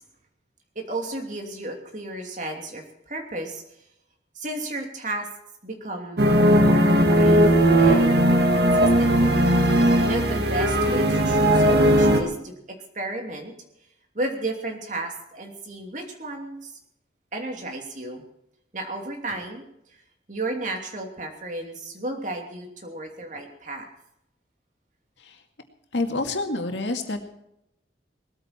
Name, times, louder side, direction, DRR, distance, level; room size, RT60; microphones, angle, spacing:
voice 1, 0.7-3.6 4.3-5.3 5.6-9.2 10.1-13.5 14.1-16.8 17.3-18.2 18.7-19.6 19.9-20.0 20.3-23.9, right 2 dB, 45° right, 2 dB, 2.9 m, -33 dB
sound 1, 6.2-12.2, right 1 dB, 65° right, 1.9 m, -18 dB
voice 2, 25.9-27.2, left 2 dB, 85° left, 4 dB, 2.2 m, -27 dB
19.5 x 14.0 x 4.5 m, 0.81 s
head